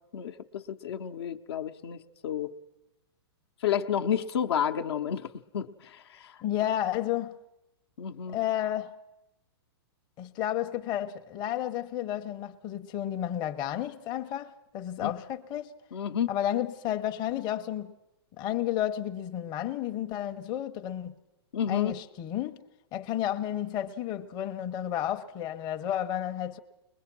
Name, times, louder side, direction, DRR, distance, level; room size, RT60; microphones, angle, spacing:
voice 1, 0.1-2.6 3.6-6.4 8.0-8.4 15.0-15.1 15.9-16.3 21.5-22.0, left 8 dB, 75° left, 0.9 m, -31 dB
voice 2, 6.4-7.4 8.3-8.9 10.2-15.7 16.3-18.0 18.4-21.1 21.7-22.6 22.9-26.6, left 11 dB, 30° left, 0.7 m, -32 dB
21.5 x 21.0 x 6.0 m
hypercardioid pair, 135°, 13 cm